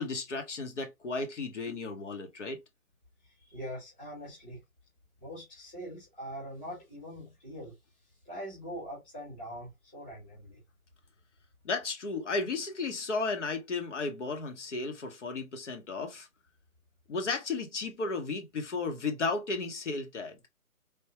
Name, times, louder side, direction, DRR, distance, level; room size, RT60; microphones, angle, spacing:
voice 1, 0.0-2.6 11.6-16.3 17.1-20.4, left 3 dB, 55° left, 1.0 m, -34 dB
voice 2, 3.2-4.6 5.2-7.7 8.2-10.6, equal, 10° left, 0.8 m, -43 dB
3.5 x 2.3 x 2.8 m
hypercardioid pair, 165°, 43 cm